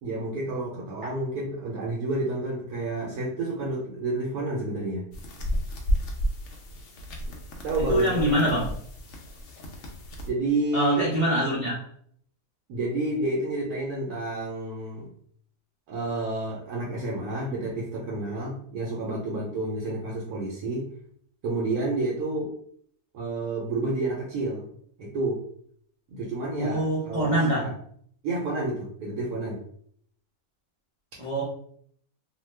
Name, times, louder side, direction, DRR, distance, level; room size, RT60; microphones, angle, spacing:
voice 1, 0.0-5.1 7.6-8.4 10.2-11.1 12.7-15.1 15.9-20.9 21.4-22.5 23.1-24.7 25.0-25.4 26.1-27.7 28.2-29.6, right 2 dB, 80° right, -3 dB, 1.2 m, -30 dB
sound 1, 5.1-10.3, equal, 65° left, 0.8 m, -32 dB
voice 2, 7.9-8.7 10.7-11.8 26.5-27.7 31.2-31.4, right 1 dB, 35° right, -8 dB, 0.5 m, -24 dB
2.7 x 2.2 x 3.2 m, 0.63 s
omnidirectional pair, 1.6 m